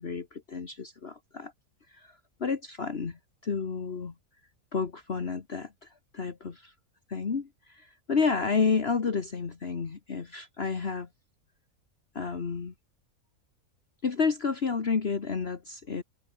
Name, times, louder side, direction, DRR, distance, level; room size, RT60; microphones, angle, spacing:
voice 1, 0.0-1.5 1.9-4.1 4.7-6.7 7.1-11.1 12.2-12.7 14.0-16.0, left 5 dB, 45° left, 1.7 m, -31 dB
open air
omnidirectional pair, 1.5 m